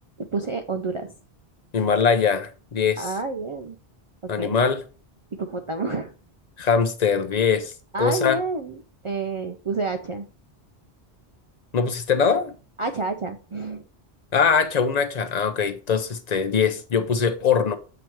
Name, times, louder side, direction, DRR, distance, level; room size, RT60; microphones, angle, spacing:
voice 1, 0.3-1.1 3.0-3.8 4.4-4.5 5.3-6.1 7.9-10.2 12.8-13.8, right 3 dB, 45° right, 0.4 m, -29 dB
voice 2, 1.7-3.1 4.3-4.8 6.6-7.7 8.0-8.4 11.7-12.5 14.3-17.8, left 6 dB, 45° left, 0.7 m, -22 dB
7.7 x 3.0 x 4.5 m
omnidirectional pair, 1.1 m